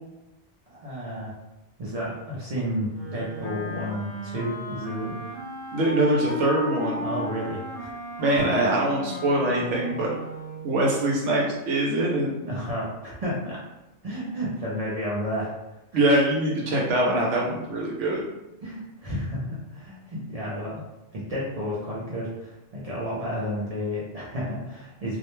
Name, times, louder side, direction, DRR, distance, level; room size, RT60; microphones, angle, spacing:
voice 1, 0.7-1.3 1.8-5.2 7.0-7.9 8.3-8.4 12.4-13.6 14.0-15.8 18.6-20.8 21.1-25.2, equal, 50° right, -6 dB, 0.4 m, -31 dB
Wind instrument woodwind instrument, 2.9-10.8, left 1 dB, 55° left, 0.9 m, -35 dB
voice 2, 5.7-7.1 8.2-10.1 10.6-12.3 15.9-18.2, right 1 dB, 75° right, -3 dB, 0.9 m, -23 dB
2.4 x 2.1 x 3.0 m, 0.97 s
omnidirectional pair, 1.2 m